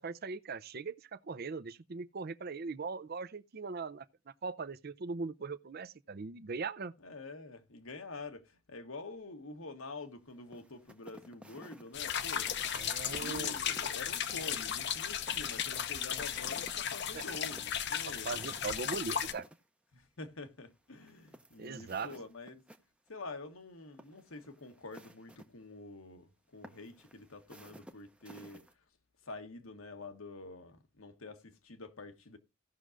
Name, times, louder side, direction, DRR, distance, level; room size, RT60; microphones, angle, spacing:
voice 1, 0.0-6.9 12.7-13.6 17.1-17.2 18.2-19.5 21.6-22.1, right 4 dB, 45° right, 0.5 m, -40 dB
voice 2, 7.0-12.5 13.0-18.4 19.9-22.7 23.1-28.8 29.2-32.4, left 3 dB, 75° left, 1.3 m, -47 dB
sound 1, 10.5-19.6 20.9-22.8 23.1-23.2 23.8-25.5 26.6-28.7, right 1 dB, 5° right, 0.6 m, -55 dB
sound 2, 11.9-19.3, left 9 dB, 50° left, 0.7 m, -35 dB
17.5 x 6.1 x 2.5 m
head